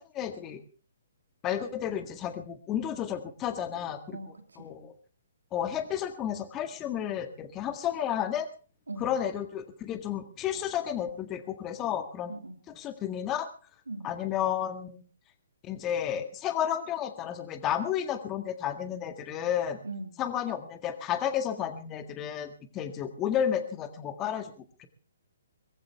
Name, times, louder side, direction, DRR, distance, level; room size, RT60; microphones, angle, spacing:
voice 1, 0.1-0.6 1.4-4.2 4.6-4.9 5.5-8.5 9.0-12.3 12.8-13.5 14.0-15.0 15.6-19.8 20.2-24.5 24.8-24.9, left 9 dB, 20° left, 8 dB, 1.9 m, -32 dB
voice 2, 4.1-4.7 8.9-9.1 12.3-12.6 13.9-14.1 19.8-20.2, right 2 dB, 85° right, 7 dB, 2.8 m, -40 dB
22.0 x 15.0 x 3.4 m, 0.37 s
figure-of-eight pair, 135°, 0 cm